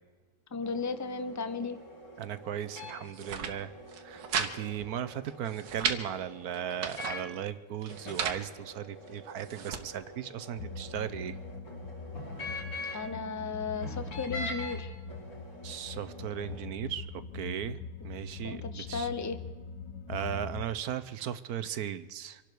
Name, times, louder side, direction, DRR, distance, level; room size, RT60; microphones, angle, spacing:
voice 1, 0.5-1.8 12.9-14.9 18.4-19.4, left 5 dB, 25° left, 11 dB, 0.3 m, -35 dB
sound 1, 0.6-7.4 7.9-13.1 13.8-14.8 15.1-16.6, left 2 dB, 50° left, 6.3 m, -45 dB
voice 2, 2.2-3.7 4.0-11.4 15.6-17.8 18.0-19.1 20.1-22.4, right 10 dB, 65° right, 13 dB, 1.2 m, -37 dB
sound 2, 3.0-3.5 3.9-4.5 4.8-4.9 5.3-6.0 6.5-7.2 7.8-8.4 9.1-9.8, right 6 dB, 90° right, 1.8 m, -34 dB
sound 3, 10.6-20.6, left 4 dB, 80° left, 1.6 m, -42 dB
26.5 x 11.5 x 4.6 m, 1.3 s
omnidirectional pair, 1.8 m